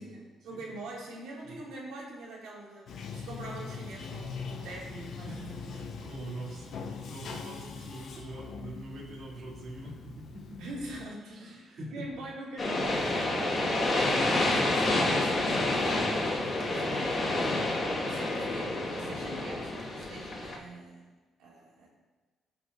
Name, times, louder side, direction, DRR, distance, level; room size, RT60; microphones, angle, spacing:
voice 1, 0.0-6.1 10.6-21.1 21.4-21.9, right 2 dB, 90° right, -4 dB, 2.5 m, -44 dB
Bathtub (filling or washing), 2.9-11.0, left 5 dB, 70° left, 0.8 m, -42 dB
voice 2, 5.3-10.6 11.2-12.0 14.4-14.5, right 2 dB, 55° right, -5 dB, 2.8 m, -44 dB
sound 1, 12.6-20.6, left 2 dB, 40° left, 1.9 m, -28 dB
15.5 x 5.8 x 2.7 m, 1.3 s
cardioid pair, 90°, 0 cm